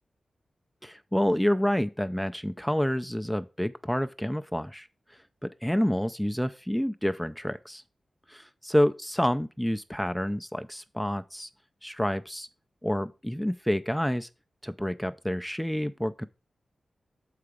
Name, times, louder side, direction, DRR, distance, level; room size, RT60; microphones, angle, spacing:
voice 1, 0.8-4.9 5.4-7.8 8.3-11.5 11.8-12.5 12.8-14.3 14.6-16.3, equal, ahead, 0.3 m, -28 dB
6.7 x 4.8 x 4.8 m
wide cardioid pair, 105°, 0 cm